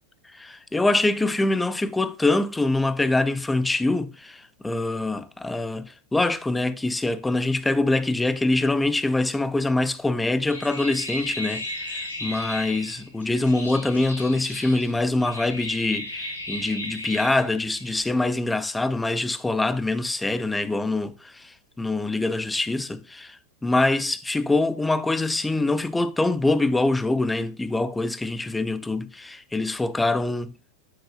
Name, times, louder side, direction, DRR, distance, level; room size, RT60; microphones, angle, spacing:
voice 1, 0.3-23.4 23.6-30.5, left 2 dB, 5° left, 0.6 m, -24 dB
sound 1, 10.5-18.1, left 1 dB, 75° left, 3.3 m, -36 dB
9.5 x 8.6 x 2.3 m
figure-of-eight pair, 90°, 0 cm